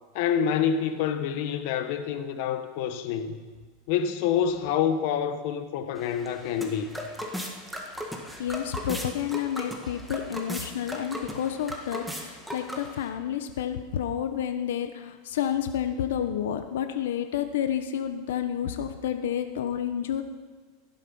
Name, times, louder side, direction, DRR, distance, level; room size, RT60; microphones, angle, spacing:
voice 1, 0.1-3.4 3.9-7.0, left 8 dB, 55° left, 1.4 m, -27 dB
sound 1, 6.0-13.1, equal, ahead, 1.8 m, -37 dB
voice 2, 8.4-20.2, left 9 dB, 85° left, 1.1 m, -30 dB
16.5 x 11.0 x 5.6 m
supercardioid pair, 145°, 0 cm